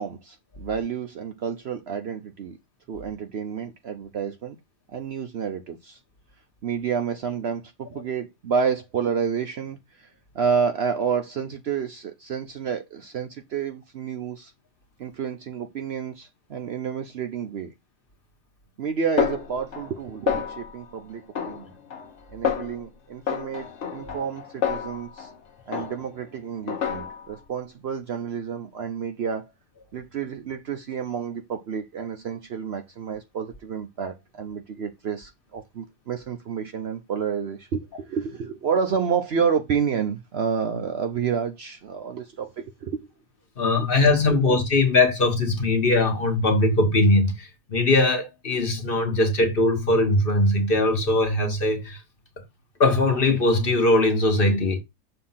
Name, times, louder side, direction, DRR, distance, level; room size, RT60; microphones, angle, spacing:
voice 1, 0.0-2.6 2.9-4.6 4.9-6.0 6.6-10.1 10.3-14.5 15.0-17.7 18.8-21.7 22.3-25.3 25.7-29.5 29.9-43.0 43.8-43.9, right 6 dB, 60° right, 0.8 m, -29 dB
Snare drum, 19.2-20.0 20.3-20.8 21.3-22.1 22.4-22.8 23.3-25.4 25.7-26.2 26.7-27.4, left 8 dB, 60° left, 1.2 m, -29 dB
voice 2, 43.6-52.0 52.8-54.8, left 2 dB, 40° left, 1.4 m, -21 dB
6.8 x 2.8 x 5.5 m
omnidirectional pair, 1.5 m